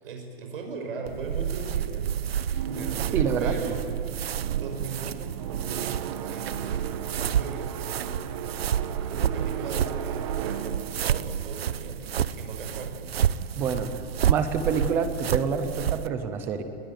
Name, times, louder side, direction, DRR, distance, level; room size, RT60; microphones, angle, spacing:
voice 1, 0.0-3.8 4.6-6.8 7.1-8.2 9.1-10.8 11.0-13.1, right 4 dB, 65° right, 3 dB, 5.6 m, -38 dB
sound 1, 1.1-16.1, right 9 dB, 85° right, 0.9 m, -29 dB
sound 2, 2.5-12.5, right 9 dB, 30° right, 1.1 m, -37 dB
voice 2, 3.1-3.8 13.5-16.6, right 6 dB, 5° right, 10 dB, 0.5 m, -28 dB
21.0 x 20.5 x 9.2 m, 2.9 s
hypercardioid pair, 175°, 29 cm